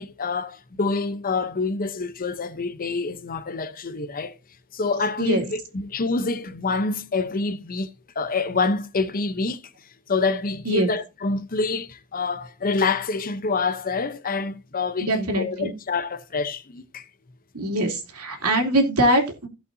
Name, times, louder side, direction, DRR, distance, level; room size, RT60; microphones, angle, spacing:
voice 1, 0.0-4.4 4.7-7.9 8.2-9.6 10.1-17.1, left 4 dB, 40° left, 0.8 m, -27 dB
voice 2, 15.0-15.7 17.5-19.5, right 1 dB, 80° right, 2.7 m, -22 dB
16.0 x 5.5 x 2.7 m
head